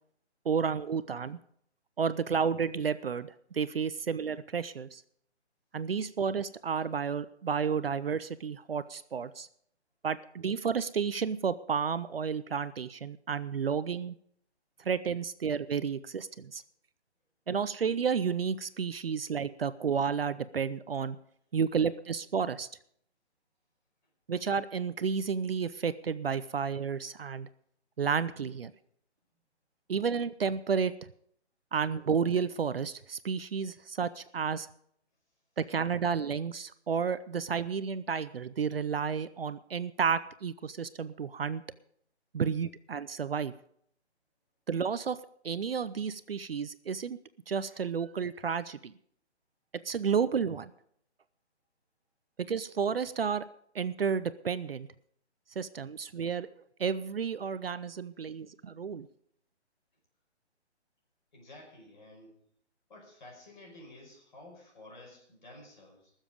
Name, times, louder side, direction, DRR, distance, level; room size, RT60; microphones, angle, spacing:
voice 1, 0.5-1.4 2.0-5.0 5.7-9.5 10.0-14.2 14.8-16.6 17.5-21.2 21.5-22.7 24.3-27.5 28.0-28.7 29.9-30.9 31.7-34.7 35.6-41.6 42.3-43.5 44.7-47.2 47.5-48.9 49.8-50.7 52.4-53.4 53.7-54.9 55.6-56.5 56.8-59.1, right 6 dB, 55° right, 14 dB, 0.5 m, -31 dB
voice 2, 61.3-62.4 62.9-66.1, left 1 dB, 45° left, -1 dB, 5.0 m, -52 dB
19.5 x 7.3 x 5.2 m, 0.68 s
hypercardioid pair, 175°, 34 cm